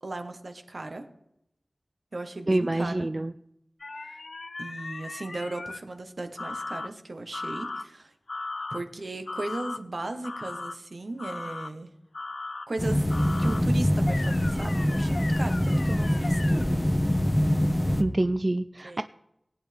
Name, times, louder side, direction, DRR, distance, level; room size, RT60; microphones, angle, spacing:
voice 1, 0.0-1.1 2.1-3.1 4.0-4.2 4.6-8.1 8.7-11.9 12.7-13.1 13.4-16.9 18.8-19.0, right 2 dB, 70° right, 6 dB, 1.2 m, -36 dB
voice 2, 2.5-3.3 18.0-19.0, right 1 dB, 35° right, 10 dB, 0.3 m, -26 dB
sound 1, 3.8-5.8 6.4-6.9 7.3-7.8 8.3-8.8 9.3-9.8 10.2-10.7 11.2-11.7 12.1-12.7 13.1-13.6 14.1-16.6, left 3 dB, 80° left, 0.5 m, -37 dB
sound 2, 12.8-18.0, equal, 15° left, 1.0 m, -24 dB
19.0 x 8.9 x 3.4 m, 0.79 s
wide cardioid pair, 65°, 0 cm